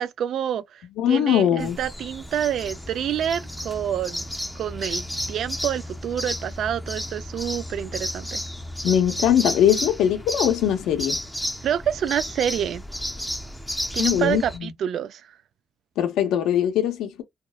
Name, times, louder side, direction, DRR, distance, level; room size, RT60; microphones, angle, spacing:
voice 1, 0.0-4.3 4.6-8.4 11.6-12.8 13.9-15.3, right 9 dB, 70° right, 0.3 m, -27 dB
voice 2, 1.0-1.8 8.8-11.2 14.0-14.7 16.0-17.2, left 10 dB, 90° left, 0.6 m, -21 dB
sound 1, 1.6-14.6, equal, ahead, 0.5 m, -32 dB
2.8 x 2.0 x 2.2 m
cardioid pair, 90°, 0 cm